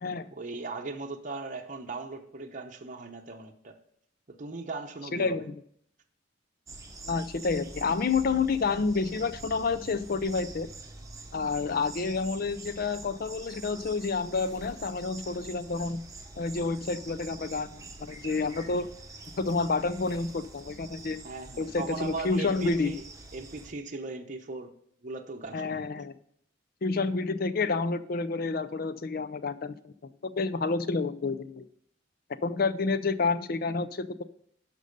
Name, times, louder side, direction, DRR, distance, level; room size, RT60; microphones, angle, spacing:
voice 1, 0.3-3.8 4.3-5.5 21.2-23.0 23.3-24.7 25.0-26.1, right 3 dB, 40° right, 4 dB, 0.8 m, -38 dB
voice 2, 5.1-5.5 7.1-10.7 11.3-16.0 16.4-18.9 19.4-21.2 21.6-22.9 25.5-26.1 26.8-29.9 30.3-31.7 32.4-34.2, left 4 dB, 50° left, 13 dB, 0.5 m, -29 dB
sound 1, 6.7-23.7, right 3 dB, 15° right, 0.9 m, -46 dB
11.5 x 5.3 x 5.2 m, 0.69 s
head